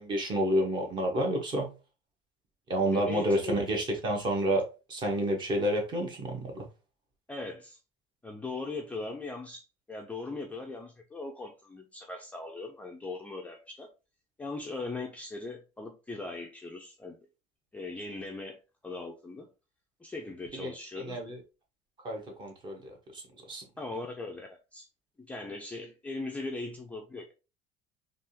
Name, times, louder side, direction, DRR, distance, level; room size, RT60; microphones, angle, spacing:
voice 1, 0.0-1.7 2.7-6.7 20.5-21.4 22.0-23.2 23.5-23.6, right 1 dB, 30° right, 1.1 m, -30 dB
voice 2, 2.9-3.6 7.3-7.8 8.2-13.9 14.4-17.2 17.7-19.5 20.0-21.2 23.8-24.9 25.2-27.3, left 3 dB, 10° left, 0.4 m, -39 dB
3.5 x 2.4 x 2.7 m
cardioid pair, 140°, 14 cm